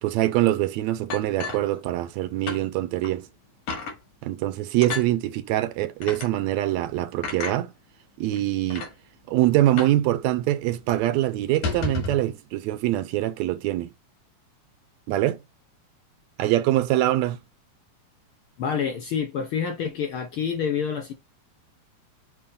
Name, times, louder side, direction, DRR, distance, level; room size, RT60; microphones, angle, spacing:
voice 1, 0.0-3.3 4.2-7.7 8.2-8.9 9.3-13.9 15.1-15.4 16.4-17.4, right 14 dB, 80° right, 1.8 m, -24 dB
sound 1, 1.1-2.2 2.5-2.6 3.0-3.2 3.7-4.0 4.8-5.1 6.0-6.3 7.2-7.6 8.3-8.4 8.7-8.9 9.8-10.0 10.3-10.4 10.7-10.9 11.5-12.2, left 4 dB, 80° left, 3.5 m, -31 dB
voice 2, 18.6-21.1, left 7 dB, 65° left, 1.4 m, -27 dB
7.1 x 2.8 x 5.3 m
omnidirectional pair, 3.3 m